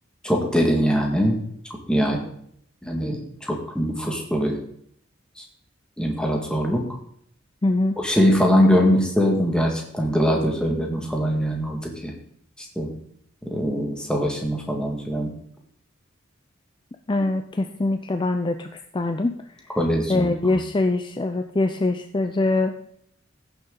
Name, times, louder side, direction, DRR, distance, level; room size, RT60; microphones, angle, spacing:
voice 1, 0.2-1.4 1.9-2.2 2.8-4.6 5.4-5.5 6.0-6.8 8.0-12.1 12.6-12.9 13.5-15.3 19.8-20.3 20.5-20.6, equal, 5° left, 1 dB, 1.9 m, -22 dB
voice 2, 7.6-8.0 17.1-19.7 20.1-22.7, left 2 dB, 25° left, 6 dB, 0.5 m, -23 dB
15.5 x 7.0 x 3.9 m, 0.66 s
head